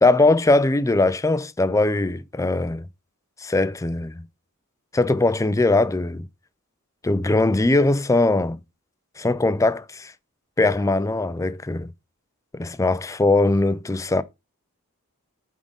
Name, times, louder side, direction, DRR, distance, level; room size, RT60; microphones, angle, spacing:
voice 1, 0.0-2.8 3.4-4.2 4.9-6.2 7.0-8.6 9.2-10.1 10.6-11.9 12.5-14.2, left 2 dB, 15° left, 0.4 m, -20 dB
9.0 x 3.7 x 5.1 m
head